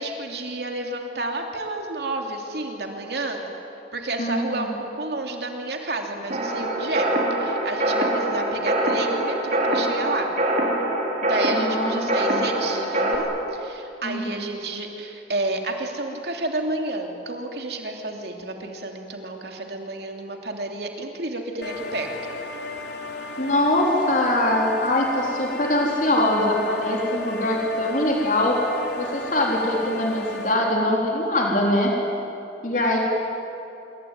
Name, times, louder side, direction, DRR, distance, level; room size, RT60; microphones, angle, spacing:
voice 1, 0.0-3.5 3.9-7.1 7.4-10.3 11.2-22.1, right 2 dB, 65° right, 2 dB, 2.9 m, -30 dB
voice 2, 4.2-4.7 11.5-12.4 14.0-14.4 23.4-28.6 29.0-31.9 32.6-33.0, left 1 dB, 45° left, -1 dB, 3.9 m, -23 dB
sound 1, 6.3-13.1, right 1 dB, 45° right, 4.4 m, -24 dB
sound 2, 21.6-30.5, left 3 dB, 70° left, 3.0 m, -35 dB
27.0 x 23.5 x 9.5 m, 2.9 s
head